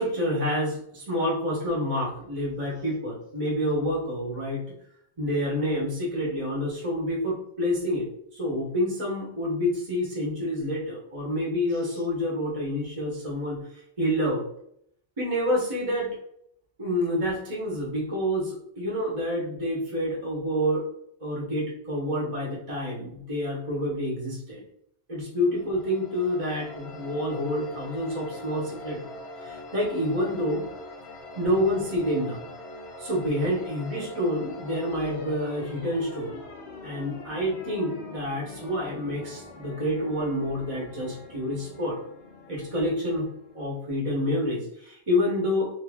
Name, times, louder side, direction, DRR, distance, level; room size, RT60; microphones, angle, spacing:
voice 1, 0.0-4.6 5.2-8.1 8.3-13.7 14.0-14.5 15.2-16.2 16.8-20.8 21.2-24.6 25.1-29.0 29.4-30.7 31.4-32.4 33.0-36.4 36.8-42.0 42.5-43.2 43.5-45.7, equal, 30° right, -4 dB, 0.8 m, -28 dB
sound 1, 25.4-44.1, left 3 dB, 60° left, 0.9 m, -43 dB
2.8 x 2.5 x 3.4 m, 0.72 s
omnidirectional pair, 1.4 m